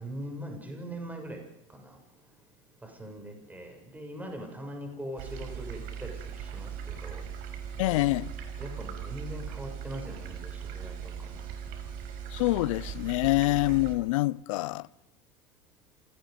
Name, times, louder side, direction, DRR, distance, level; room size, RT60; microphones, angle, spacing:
voice 1, 0.0-1.4 1.7-2.0 2.8-7.2 8.6-11.4, equal, 10° right, 7.0 m, -41 dB
sound 1, 5.2-13.9, right 7 dB, 55° right, 5.5 m, -39 dB
voice 2, 7.8-8.3 12.3-14.9, left 20 dB, 70° left, 0.7 m, -26 dB
28.0 x 19.0 x 5.3 m
hypercardioid pair, 90°, 17 cm